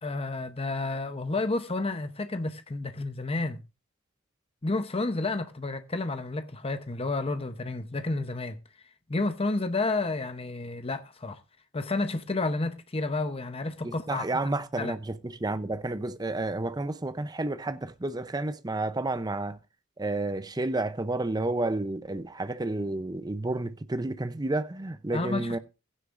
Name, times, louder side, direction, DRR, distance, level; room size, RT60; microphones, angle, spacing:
voice 1, 0.0-3.6 4.6-8.6 9.1-11.4 11.7-14.2 14.8-14.9 25.1-25.6, left 2 dB, 30° left, 0.8 m, -30 dB
voice 2, 13.8-19.6 20.0-25.6, right 2 dB, 20° right, 0.6 m, -31 dB
16.0 x 9.7 x 2.5 m
head